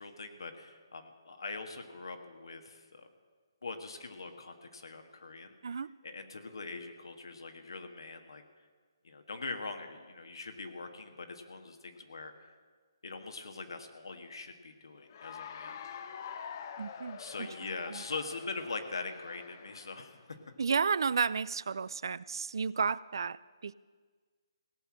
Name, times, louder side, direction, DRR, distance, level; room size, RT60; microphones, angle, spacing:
voice 1, 0.0-3.1 3.6-5.8 6.0-8.4 9.0-12.5 13.0-15.8 17.2-20.4, left 3 dB, 80° left, 6 dB, 1.5 m, -42 dB
Cheering / Applause, 15.0-20.2, left 7 dB, 45° left, 0.8 m, -46 dB
voice 2, 16.8-17.5 17.9-18.0 20.6-23.7, right 5 dB, 70° right, 20 dB, 0.4 m, -32 dB
17.5 x 5.9 x 8.7 m, 1.5 s
hypercardioid pair, 155°, 2 cm